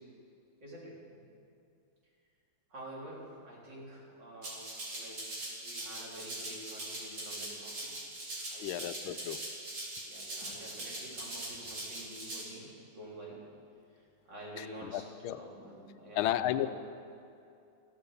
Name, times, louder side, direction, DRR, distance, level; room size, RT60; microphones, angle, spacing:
voice 1, 0.6-1.2 2.7-7.9 8.5-9.2 10.0-12.7 12.9-13.4 14.3-15.0 15.3-16.7, right 1 dB, 55° right, -5 dB, 4.5 m, -48 dB
Rattle (instrument), 4.4-12.4, right 1 dB, 90° right, 5.0 m, -41 dB
voice 2, 8.6-9.4 14.6-15.5 16.1-16.7, left 13 dB, 85° left, 12 dB, 1.4 m, -33 dB
15.0 x 13.5 x 6.8 m, 2.5 s
omnidirectional pair, 2.3 m